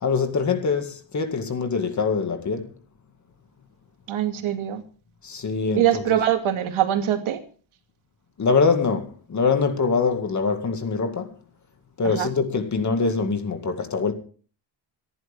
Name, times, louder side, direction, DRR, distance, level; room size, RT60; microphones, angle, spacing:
voice 1, 0.0-2.7 5.2-6.2 8.4-11.3 12.0-14.1, left 4 dB, 35° left, 2.1 m, -24 dB
voice 2, 4.1-4.8 5.8-7.4 12.0-12.3, right 11 dB, 85° right, 2.4 m, -23 dB
25.5 x 11.0 x 3.6 m
cardioid pair, 150°, 47 cm